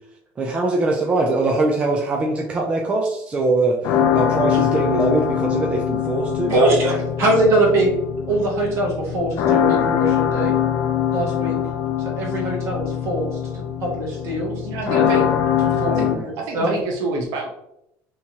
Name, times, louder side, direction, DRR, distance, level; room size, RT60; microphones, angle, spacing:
voice 1, 0.4-6.5 15.9-16.3, right 2 dB, 20° right, 0 dB, 0.4 m, -22 dB
sound 1, 3.8-16.2, left 9 dB, 55° left, 0.5 m, -22 dB
voice 2, 6.5-10.5 11.1-11.6 12.2-13.3 13.5-15.2 15.6-16.0 16.5-16.8, right 1 dB, 45° right, -3 dB, 1.4 m, -22 dB
voice 3, 14.7-15.6 16.0-16.1 16.4-17.5, right 3 dB, 70° right, 0 dB, 0.7 m, -28 dB
3.5 x 3.0 x 2.8 m, 0.79 s
cardioid pair, 155°, 6 cm